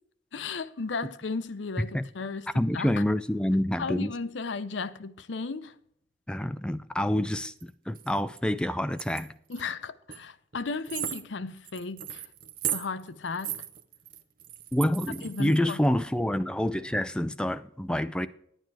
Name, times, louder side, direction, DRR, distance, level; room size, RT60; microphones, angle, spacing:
voice 1, 0.3-2.9 3.8-5.7 9.5-12.3 12.7-13.6 15.2-15.8, left 4 dB, 70° left, 0.6 m, -35 dB
voice 2, 2.5-4.1 6.3-9.3 14.7-18.3, left 1 dB, 5° left, 0.4 m, -27 dB
sound 1, 7.4-7.6 7.9-8.4 9.0-9.6 10.1-10.2 10.5-10.6 10.9-15.8, right 11 dB, 50° right, 0.7 m, -37 dB
10.5 x 9.1 x 4.6 m
head